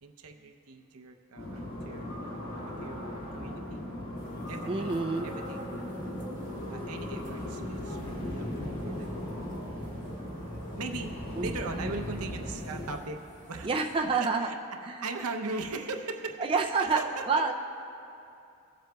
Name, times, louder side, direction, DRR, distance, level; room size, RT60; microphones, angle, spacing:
voice 1, 0.0-3.8 4.5-5.8 6.7-9.2 10.7-11.1 11.4-13.7 14.1-17.4, right 3 dB, 85° right, 4 dB, 0.7 m, -40 dB
sound 1, 1.4-13.0, left 1 dB, 80° left, 2.3 m, -37 dB
sound 2, 4.2-14.0, equal, 35° left, 2.0 m, -56 dB
voice 2, 4.7-5.3 11.4-11.5 13.6-14.5 14.9-15.0 16.4-17.0 17.3-17.5, right 4 dB, 25° right, 1 dB, 0.4 m, -27 dB
19.5 x 7.7 x 2.3 m, 2.6 s
head